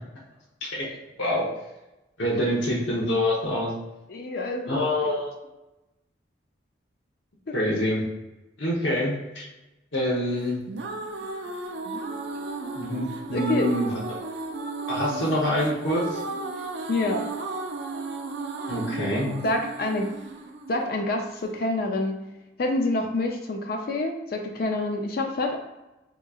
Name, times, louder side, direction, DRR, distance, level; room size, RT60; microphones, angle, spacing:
voice 1, 2.2-3.7 4.7-5.3 7.5-8.0 8.6-9.4 9.9-10.6 12.7-14.2 14.9-16.2 18.7-19.3, left 1 dB, 85° left, -5 dB, 0.8 m, -26 dB
voice 2, 4.1-5.1 7.5-7.6 13.3-13.7 16.9-17.2 19.4-20.1 20.7-22.2 22.6-25.6, left 2 dB, 50° left, 3 dB, 0.4 m, -27 dB
sound 1, 10.4-21.5, right 3 dB, 65° right, 0.4 m, -34 dB
3.5 x 3.0 x 2.3 m, 0.99 s
head